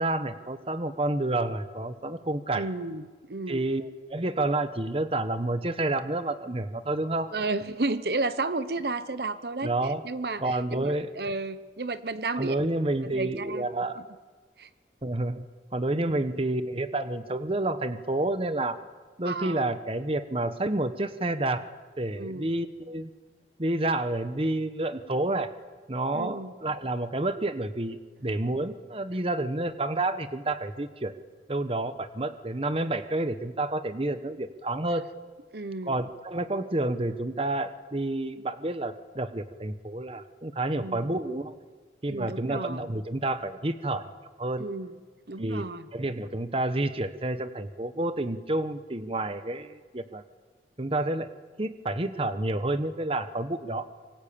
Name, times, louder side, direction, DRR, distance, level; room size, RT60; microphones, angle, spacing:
voice 1, 0.0-2.7 3.5-7.3 9.6-10.0 10.4-11.1 12.4-14.0 15.0-15.5 15.7-18.8 19.2-21.6 22.0-23.1 23.6-25.5 25.9-31.1 31.5-35.0 35.8-41.5 42.0-44.1 44.4-44.6 45.4-45.7 45.9-50.2 50.8-53.8, right 2 dB, 35° right, 11 dB, 1.1 m, -29 dB
voice 2, 2.5-3.6 7.3-12.6 13.1-13.7 14.6-14.7 16.0-16.2 19.2-19.7 22.2-22.5 26.1-26.5 35.5-35.9 40.8-41.1 42.1-42.9 44.6-44.9 45.3-45.9, right 3 dB, 65° right, 13 dB, 1.1 m, -33 dB
25.5 x 24.5 x 8.6 m, 1.4 s
head